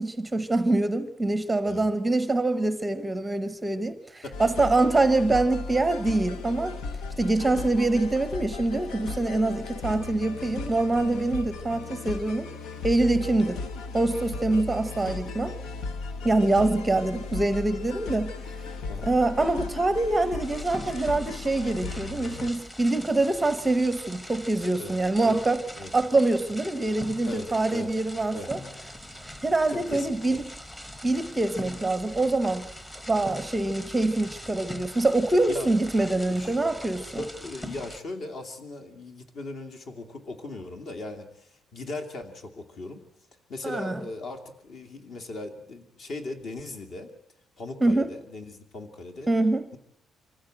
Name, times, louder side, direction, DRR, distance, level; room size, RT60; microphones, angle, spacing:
voice 1, 0.0-6.8 7.2-12.5 12.8-13.6 13.9-15.6 16.2-18.3 19.0-25.6 25.9-28.6 29.4-30.4 31.0-32.7 33.1-37.2 43.6-44.0 47.8-48.1 49.3-49.7, right 2 dB, 10° right, 0.8 m, -25 dB
sound 1, 4.3-22.5, left 4 dB, 75° left, 1.2 m, -36 dB
sound 2, 20.4-38.0, equal, 15° left, 1.4 m, -42 dB
voice 2, 24.8-25.4 25.8-25.9 27.3-27.9 28.3-28.5 29.7-30.4 35.5-35.7 36.3-36.5 37.2-43.0 43.5-47.1 47.6-49.3, left 2 dB, 50° left, 2.5 m, -38 dB
25.0 x 15.5 x 7.7 m
cardioid pair, 160°, 0 cm